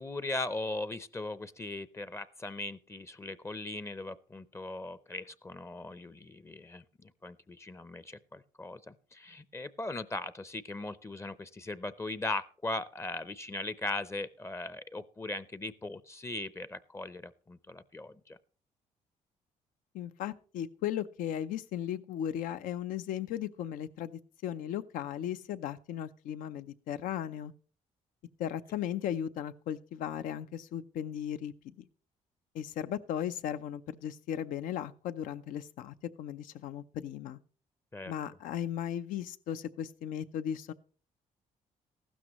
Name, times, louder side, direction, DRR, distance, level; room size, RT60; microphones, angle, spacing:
voice 1, 0.0-18.4 37.9-38.1, left 2 dB, 20° left, 16 dB, 0.6 m, -39 dB
voice 2, 19.9-27.5 28.4-31.9 32.5-37.4 38.1-40.7, left 10 dB, 85° left, 12 dB, 0.6 m, -36 dB
14.5 x 12.5 x 3.0 m, 0.41 s
cardioid pair, 85°, 14 cm